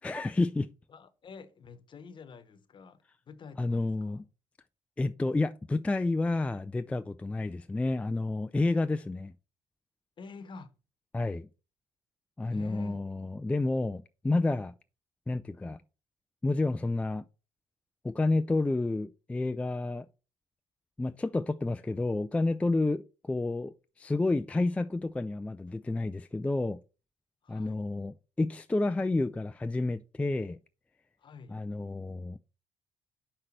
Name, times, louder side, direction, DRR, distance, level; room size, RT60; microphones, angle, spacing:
voice 1, 0.0-0.7 3.6-4.2 5.0-9.3 11.1-11.5 12.4-14.7 15.3-15.8 16.4-17.2 18.0-20.1 21.0-26.8 27.5-30.6 31.5-32.4, left 2 dB, 10° left, 0.3 m, -30 dB
voice 2, 0.9-4.2 10.2-10.7 12.5-13.0 27.4-27.8 31.2-31.6, left 4 dB, 45° left, 1.1 m, -48 dB
6.5 x 5.7 x 4.4 m
hypercardioid pair, 65°, 11 cm